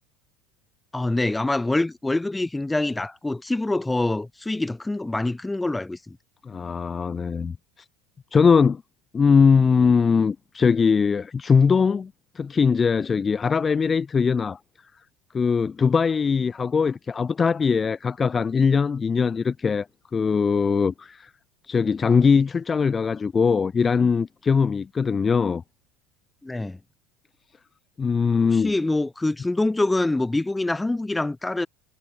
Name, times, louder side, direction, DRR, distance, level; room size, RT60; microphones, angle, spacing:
voice 1, 0.9-6.2 26.4-26.8 28.5-31.7, left 2 dB, 10° left, 2.0 m, -25 dB
voice 2, 6.4-7.6 8.3-8.8 9.1-14.6 15.3-19.9 20.1-21.3 21.7-25.6 28.0-28.7, left 5 dB, 25° left, 0.9 m, -21 dB
figure-of-eight pair, 70°, 0 cm